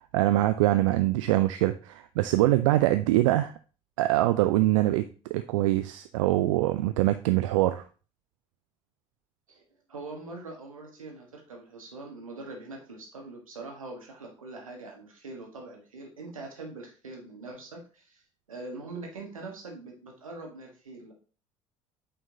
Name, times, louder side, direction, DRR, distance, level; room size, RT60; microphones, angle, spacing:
voice 1, 0.0-3.5 4.0-7.8, right 16 dB, 70° right, 11 dB, 0.4 m, -24 dB
voice 2, 9.9-18.2 18.5-21.1, right 3 dB, 85° right, 1 dB, 1.4 m, -43 dB
8.3 x 4.4 x 2.7 m, 0.37 s
figure-of-eight pair, 55°, 17 cm